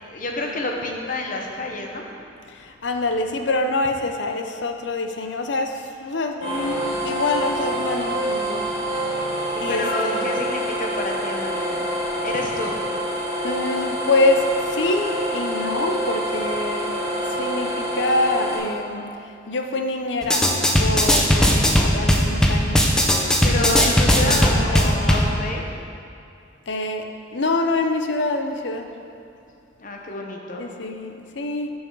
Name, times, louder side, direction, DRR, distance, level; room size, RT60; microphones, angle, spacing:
voice 1, 0.0-2.1 9.7-11.9 12.2-12.8 21.4-21.7 23.4-25.8 29.8-30.6, left 2 dB, 45° left, 1 dB, 1.0 m, -29 dB
voice 2, 2.5-8.7 9.6-10.3 13.4-17.0 17.4-19.1 19.5-20.5 20.8-22.9 23.4-25.3 26.7-27.1 27.3-28.9 30.6-31.7, left 2 dB, 70° left, 5 dB, 0.7 m, -25 dB
sound 1, 6.4-18.6, right 1 dB, 90° left, 2.2 m, -26 dB
sound 2, 20.2-25.3, equal, 5° left, 0.6 m, -18 dB
10.5 x 5.6 x 4.7 m, 2.5 s
head